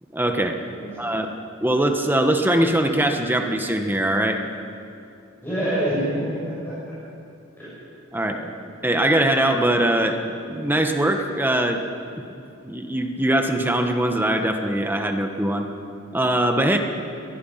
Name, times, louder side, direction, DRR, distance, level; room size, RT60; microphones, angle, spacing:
voice 1, 0.1-0.6 1.0-1.3 1.6-4.4 8.1-8.4 8.8-10.2 10.5-11.8 12.6-15.7 16.1-16.8, right 1 dB, 10° right, 5 dB, 1.3 m, -21 dB
voice 2, 5.4-6.7 7.6-7.7 8.2-8.5, right 1 dB, 10° left, -11 dB, 7.2 m, -26 dB
22.5 x 20.0 x 5.8 m, 2.5 s
head